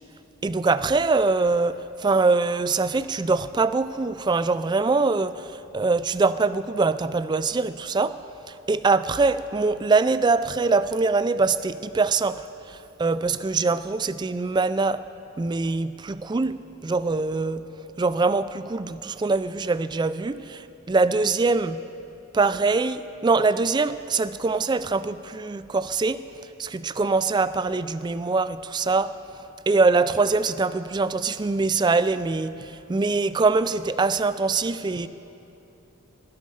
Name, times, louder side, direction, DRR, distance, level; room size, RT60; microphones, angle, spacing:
voice 1, 0.4-8.2 8.5-15.0 15.4-17.6 18.0-21.8 22.3-26.2 26.6-29.2 29.7-35.1, right 3 dB, 20° right, 14 dB, 0.3 m, -23 dB
19.0 x 11.5 x 5.5 m, 2.9 s
head